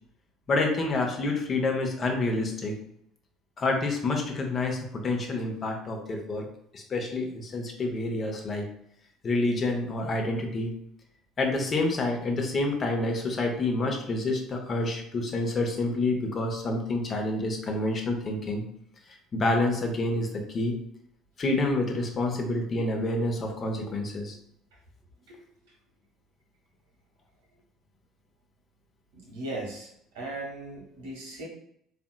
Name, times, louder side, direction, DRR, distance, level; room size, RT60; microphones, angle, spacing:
voice 1, 0.5-2.7 3.6-6.5 6.7-8.7 9.2-10.7 11.4-18.6 19.3-20.7 21.4-24.4, left 2 dB, 40° left, 2 dB, 0.7 m, -28 dB
voice 2, 29.1-31.4, right 2 dB, 70° right, -3 dB, 1.0 m, -38 dB
3.8 x 2.6 x 2.2 m, 0.72 s
figure-of-eight pair, 60°, 0 cm